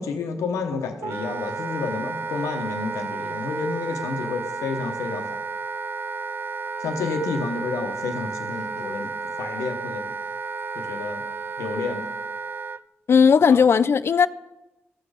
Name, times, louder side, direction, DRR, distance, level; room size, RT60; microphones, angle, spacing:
voice 1, 0.0-5.4 6.8-9.1 9.4-10.1 10.7-11.2 11.6-12.1 13.5-13.6, left 4 dB, 90° left, 1.0 m, -30 dB
Wind instrument woodwind instrument, 1.0-12.8, right 4 dB, 45° right, 0.4 m, -32 dB
voice 2, 13.1-14.3, left 6 dB, 55° left, 0.4 m, -16 dB
14.0 x 6.5 x 4.9 m
supercardioid pair, 50°, 5 cm